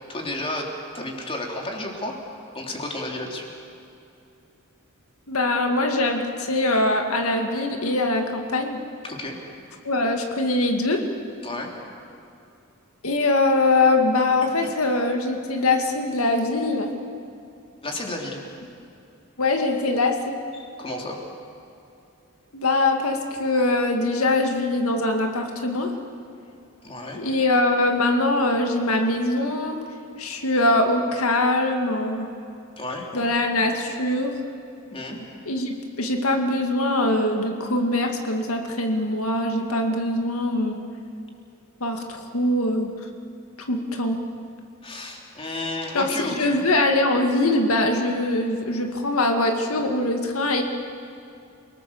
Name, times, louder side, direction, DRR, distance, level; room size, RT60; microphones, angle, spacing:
voice 1, 0.1-2.2 2.5-3.4 9.0-9.4 11.4-11.7 17.8-18.4 20.6-21.2 26.8-27.3 32.2-32.3 32.8-33.3 34.9-35.2 44.8-46.6, left 1 dB, 25° left, 0 dB, 3.2 m, -32 dB
voice 2, 5.3-8.8 9.8-11.0 13.0-16.9 19.4-20.4 22.5-25.9 27.1-29.8 30.2-32.3 33.1-34.3 35.5-40.8 41.8-42.9 43.7-44.2 45.9-50.6, left 2 dB, 80° left, 4 dB, 2.1 m, -22 dB
29.0 x 19.0 x 7.1 m, 2.6 s
head